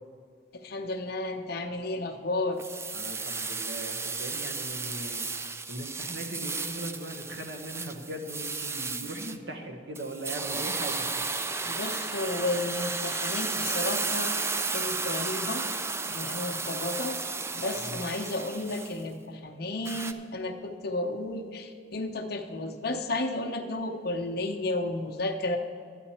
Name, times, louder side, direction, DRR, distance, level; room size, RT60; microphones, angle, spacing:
voice 1, 0.6-2.6 11.6-14.3 14.7-15.6 16.1-17.2 17.5-25.6, left 2 dB, 60° left, 2 dB, 0.7 m, -32 dB
sound 1, 2.6-9.4 10.0-19.0 19.9-20.1, right 4 dB, 15° right, 0.3 m, -33 dB
voice 2, 2.9-5.3 5.7-11.3 11.6-11.8 17.7-18.0, right 1 dB, 80° right, 4 dB, 1.2 m, -39 dB
12.0 x 9.1 x 4.3 m, 2.2 s
head